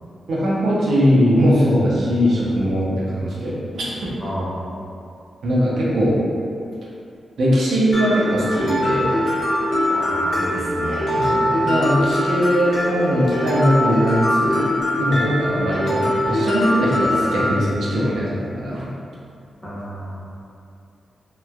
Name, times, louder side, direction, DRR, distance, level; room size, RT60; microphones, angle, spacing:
voice 1, 0.3-3.9 5.4-6.1 7.4-9.1 11.1-18.9, equal, 80° right, -6 dB, 0.6 m, -20 dB
voice 2, 4.2-4.7 9.9-11.3 19.6-20.2, equal, 10° left, -9 dB, 0.8 m, -30 dB
Mallet percussion, 7.9-17.5, left 1 dB, 80° left, 0.7 m, -22 dB
3.0 x 2.1 x 2.3 m, 2.5 s
wide cardioid pair, 105°, 0 cm